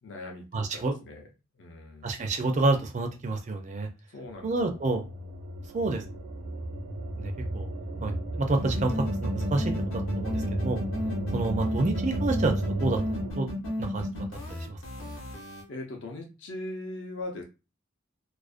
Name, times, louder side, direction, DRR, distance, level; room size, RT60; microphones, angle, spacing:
voice 1, 0.0-1.3 1.5-2.1 4.1-4.5 15.7-17.4, left 2 dB, 60° left, 2 dB, 0.5 m, -40 dB
voice 2, 0.5-0.9 2.0-3.9 4.4-5.0 5.7-6.0 7.2-7.7 8.0-10.8 11.3-12.5 12.8-13.0 13.4-13.5 13.8-14.1 14.5-15.1, right 2 dB, 35° right, 4 dB, 0.4 m, -29 dB
sound 1, 4.3-13.3, right 1 dB, 90° right, 0.7 m, -33 dB
sound 2, 8.6-15.6, equal, 80° left, 0.8 m, -34 dB
2.4 x 2.1 x 2.4 m, 0.29 s
head